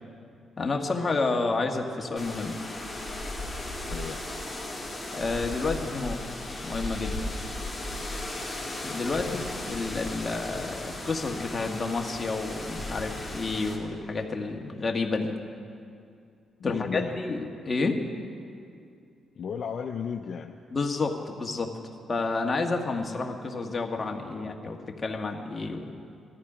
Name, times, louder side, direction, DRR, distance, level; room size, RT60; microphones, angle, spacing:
voice 1, 0.6-2.6 5.1-6.2 6.6-7.3 8.8-15.4 16.6-18.0 20.7-21.7 22.1-25.8, left 3 dB, 30° left, 2 dB, 1.6 m, -30 dB
sound 1, 2.2-13.8, left 1 dB, 5° left, 2.6 m, -36 dB
voice 2, 3.9-4.2 9.2-9.5 16.6-17.2 19.3-20.6, left 6 dB, 60° left, 4 dB, 0.6 m, -34 dB
18.0 x 13.5 x 5.0 m, 2.4 s
cardioid pair, 105°, 0 cm